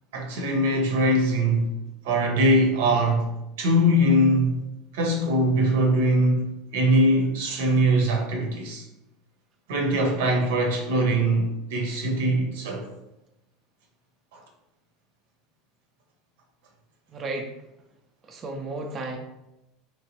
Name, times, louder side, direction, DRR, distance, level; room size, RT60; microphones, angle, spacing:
voice 1, 0.1-1.7 2.0-4.5 4.9-8.9 9.7-12.8 14.3-14.4, right 1 dB, 85° right, 0.8 m, -22 dB
voice 2, 17.1-17.6 18.2-19.2, right 2 dB, 30° right, 0.4 m, -33 dB
3.3 x 3.0 x 3.0 m
supercardioid pair, 135°, 0 cm